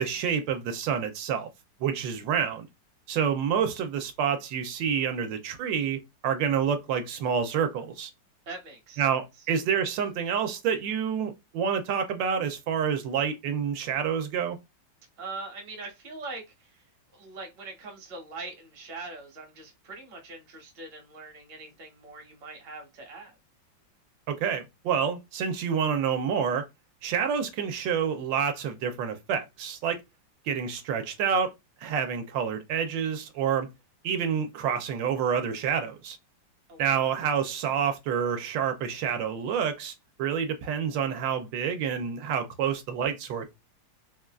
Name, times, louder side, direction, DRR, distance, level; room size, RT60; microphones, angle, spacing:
voice 1, 0.0-1.5 1.8-2.7 3.1-8.1 9.0-14.6 24.3-26.7 27.0-30.0 30.5-31.5 31.8-33.7 34.0-36.2 36.8-39.9 40.2-43.5, right 7 dB, 75° right, 1.2 m, -28 dB
voice 2, 8.5-9.1 9.4-9.5 15.2-16.9 17.1-23.4 36.7-37.0, right 3 dB, 40° right, 0.7 m, -42 dB
3.7 x 2.3 x 2.2 m
omnidirectional pair, 2.1 m